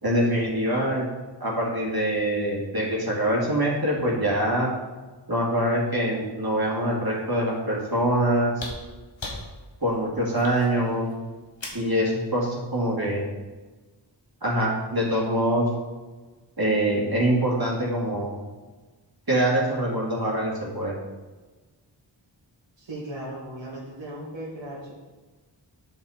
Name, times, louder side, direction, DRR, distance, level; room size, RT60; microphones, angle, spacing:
voice 1, 0.0-1.1 1.4-4.7 5.3-8.5 9.8-11.1 11.7-13.2 14.4-15.7 16.6-18.3 19.3-20.9, right 1 dB, 55° right, -4 dB, 2.3 m, -24 dB
sound 1, 8.5-12.0 13.4-13.5, left 2 dB, 80° left, 1.5 m, -39 dB
voice 2, 22.8-24.9, right 1 dB, 85° right, -8 dB, 1.8 m, -37 dB
8.4 x 5.4 x 5.0 m, 1.3 s
wide cardioid pair, 45°, 45 cm